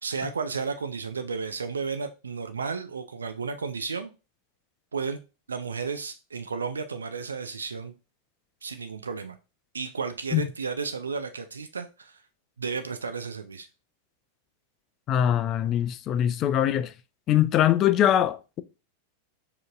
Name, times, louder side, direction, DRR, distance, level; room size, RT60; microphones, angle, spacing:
voice 1, 0.0-4.1 4.9-5.2 5.5-7.9 8.6-9.4 9.7-12.2 12.6-13.7, right 5 dB, 75° right, 0.3 m, -33 dB
voice 2, 15.1-16.9 17.3-18.6, left 11 dB, 35° left, 0.3 m, -22 dB
5.0 x 2.9 x 2.4 m
figure-of-eight pair, 90°, 0 cm